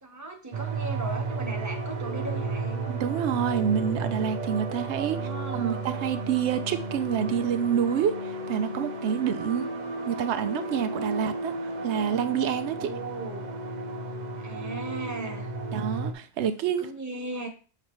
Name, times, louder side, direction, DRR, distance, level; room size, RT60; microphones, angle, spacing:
voice 1, 0.0-2.8 5.0-5.8 12.7-13.4 14.4-15.5 16.8-17.5, right 2 dB, 15° right, 1.1 m, -37 dB
sound 1, 0.5-16.1, right 3 dB, 45° right, 0.7 m, -33 dB
voice 2, 2.9-9.7 10.1-11.6 11.8-12.9 15.7-16.9, right 8 dB, 90° right, 0.9 m, -28 dB
6.7 x 4.9 x 3.1 m
omnidirectional pair, 1.1 m